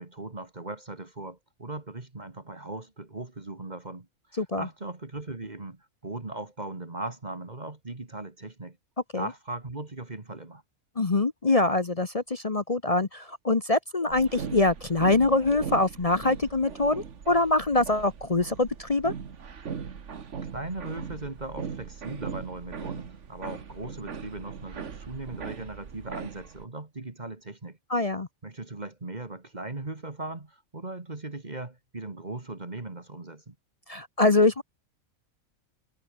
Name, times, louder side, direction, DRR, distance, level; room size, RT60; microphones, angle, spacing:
voice 1, 0.0-8.8 9.1-10.6 20.4-27.8 28.4-33.6, right 2 dB, 30° right, 2.1 m, -38 dB
voice 2, 11.0-19.1 27.9-28.3 33.9-34.6, left 2 dB, 30° left, 0.9 m, -24 dB
sound 1, 14.1-26.6, right 6 dB, 60° right, 1.7 m, -39 dB
omnidirectional pair, 1.4 m